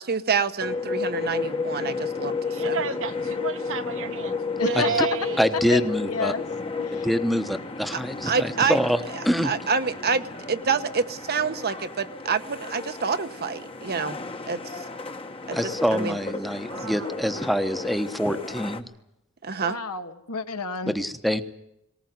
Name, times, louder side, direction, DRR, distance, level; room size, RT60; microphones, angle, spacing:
voice 1, 0.0-2.3 2.6-2.8 8.2-8.8 9.4-14.2 14.5-14.8 15.5-16.2 19.4-19.8, right 5 dB, 45° right, 10 dB, 1.0 m, -27 dB
sound 1, 0.6-18.8, left 4 dB, 25° left, 1.2 m, -32 dB
voice 2, 2.4-5.4 16.7-17.3, right 6 dB, 60° right, 8 dB, 1.3 m, -32 dB
voice 3, 4.6-5.1 5.5-6.5 6.8-7.1 19.6-21.0, left 5 dB, 85° left, 7 dB, 1.7 m, -30 dB
voice 4, 5.4-6.3 6.9-9.5 15.5-18.9 20.8-21.4, equal, ahead, 9 dB, 1.1 m, -25 dB
19.0 x 19.0 x 9.4 m, 0.83 s
head